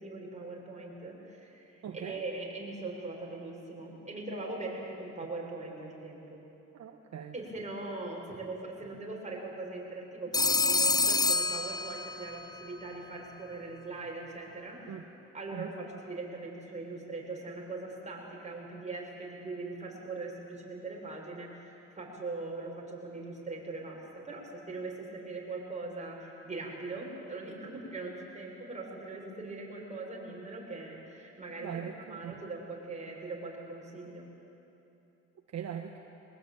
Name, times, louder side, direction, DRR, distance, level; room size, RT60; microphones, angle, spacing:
voice 1, 0.0-6.4 7.3-14.9 15.3-34.3, right 3 dB, 25° right, -2 dB, 7.0 m, -41 dB
voice 2, 1.8-2.2 6.7-7.3 14.9-15.0 15.5-15.7 31.6-32.4 35.5-36.0, right 8 dB, 60° right, 3 dB, 1.4 m, -40 dB
Telephone, 10.3-12.4, left 3 dB, 15° left, 0.7 m, -27 dB
23.5 x 20.0 x 9.1 m, 2.9 s
cardioid pair, 90°, 30 cm